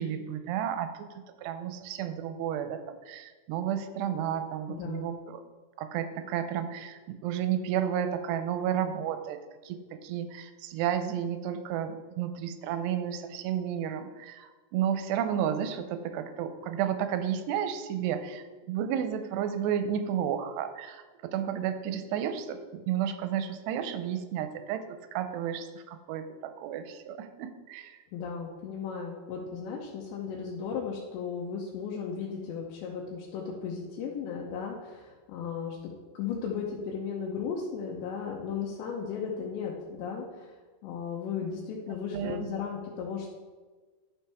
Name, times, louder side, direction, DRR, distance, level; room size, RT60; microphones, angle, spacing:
voice 1, 0.0-5.4 5.8-28.0 42.1-42.5, right 9 dB, 85° right, 9 dB, 2.6 m, -32 dB
voice 2, 4.7-5.1 28.1-35.8 36.1-40.6 40.8-43.3, left 6 dB, 90° left, -3 dB, 3.1 m, -35 dB
11.5 x 7.1 x 3.4 m, 1.3 s
omnidirectional pair, 5.0 m